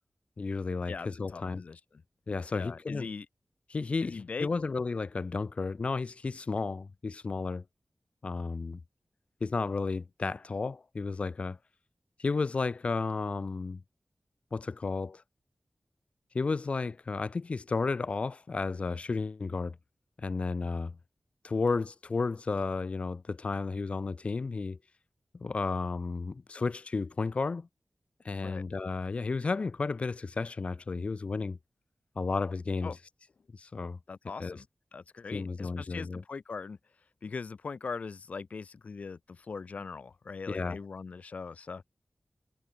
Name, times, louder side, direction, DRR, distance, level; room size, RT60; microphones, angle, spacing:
voice 1, 0.4-1.6 2.3-3.1 3.7-7.6 8.2-8.8 9.4-11.6 12.2-13.8 14.5-15.2 16.3-19.7 20.2-21.0 21.4-24.8 25.3-27.7 28.2-31.6 32.1-32.9 33.5-34.0 34.4-34.6 35.3-36.2 40.5-40.8, left 4 dB, 60° left, 1.3 m, -33 dB
voice 2, 0.9-1.8 2.5-3.3 4.0-4.5 28.4-28.6 32.8-33.0 34.1-34.7 34.9-36.8 37.2-41.8, left 4 dB, 75° left, 2.6 m, -41 dB
wide cardioid pair, 80°, 2 cm